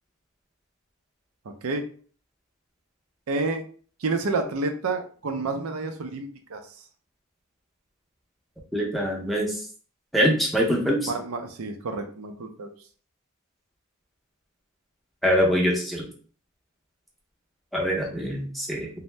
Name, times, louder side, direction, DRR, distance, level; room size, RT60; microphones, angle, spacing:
voice 1, 3.3-3.6 4.0-6.6 11.1-12.7, right 3 dB, 80° right, 5 dB, 0.5 m, -29 dB
voice 2, 8.7-9.6 10.1-11.1 15.2-16.0 17.7-18.9, equal, ahead, -1 dB, 0.6 m, -24 dB
2.6 x 2.0 x 3.2 m, 0.43 s
head